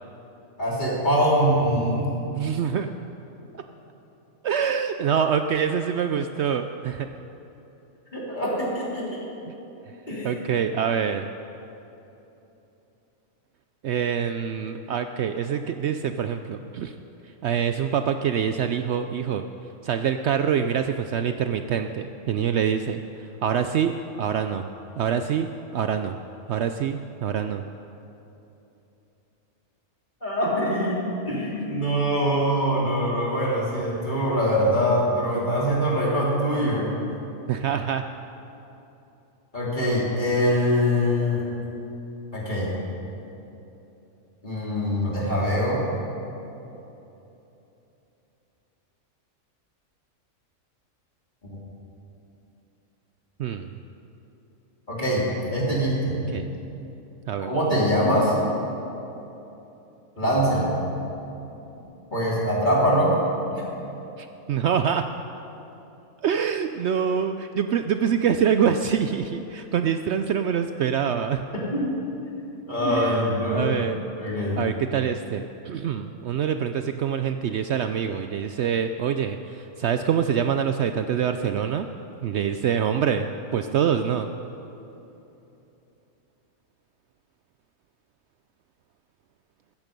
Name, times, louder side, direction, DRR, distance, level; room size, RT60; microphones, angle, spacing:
voice 1, 0.6-2.1 8.1-9.2 10.1-10.3 30.2-36.9 39.5-41.4 42.3-42.7 44.4-45.8 51.5-51.6 54.9-56.2 57.4-58.3 60.2-60.8 62.1-63.1 63.5-63.6 71.7-72.0 72.7-73.8 74.2-74.6, equal, 35° left, -6 dB, 3.7 m, -23 dB
voice 2, 2.3-2.9 4.4-7.1 10.2-11.3 13.8-16.9 17.4-19.4 19.8-24.7 25.0-25.5 25.7-26.2 26.5-27.6 37.5-38.0 53.4-53.7 56.3-56.5 57.3-57.5 60.2-60.4 64.2-65.0 66.2-71.4 72.8-74.0 74.5-81.9 82.2-83.3 83.5-84.3, right 8 dB, 65° right, 8 dB, 0.8 m, -25 dB
15.5 x 13.5 x 5.3 m, 3.0 s
omnidirectional pair, 1.4 m